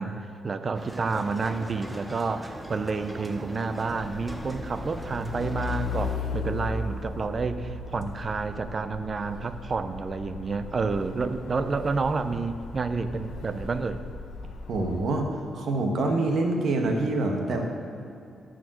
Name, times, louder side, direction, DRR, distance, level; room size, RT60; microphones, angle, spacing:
voice 1, 0.0-14.0, right 4 dB, 35° right, 11 dB, 0.5 m, -29 dB
sound 1, 0.7-6.2, equal, 10° right, 0.9 m, -40 dB
Truck, 4.0-15.2, left 4 dB, 80° left, 0.9 m, -37 dB
voice 2, 14.7-17.7, right 2 dB, 65° right, 3 dB, 1.2 m, -26 dB
12.0 x 5.0 x 7.5 m, 2.6 s
cardioid pair, 130°, 0 cm